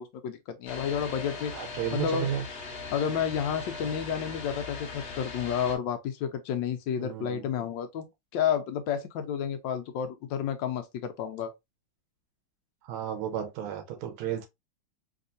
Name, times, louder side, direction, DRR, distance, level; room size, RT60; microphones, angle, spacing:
voice 1, 0.0-2.3 2.9-8.1 8.3-11.5, left 8 dB, 75° left, 1.2 m, -31 dB
sound 1, 0.7-5.8, left 4 dB, 50° left, 0.7 m, -39 dB
voice 2, 1.5-2.4 7.0-7.7 12.8-14.5, right 9 dB, 90° right, 1.5 m, -33 dB
3.5 x 3.0 x 2.5 m
omnidirectional pair, 2.2 m